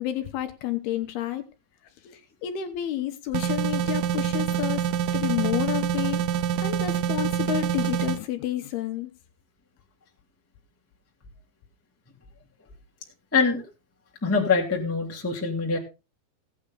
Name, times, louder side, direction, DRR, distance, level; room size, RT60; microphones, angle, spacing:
voice 1, 0.0-1.4 2.0-6.2 6.6-9.1, left 12 dB, 75° left, 7 dB, 2.6 m, -30 dB
sound 1, 3.3-8.2, right 9 dB, 80° right, 2.0 m, -26 dB
voice 2, 13.3-13.6 14.2-15.8, left 4 dB, 5° left, -1 dB, 1.1 m, -24 dB
16.5 x 8.7 x 3.7 m, 0.28 s
omnidirectional pair, 5.0 m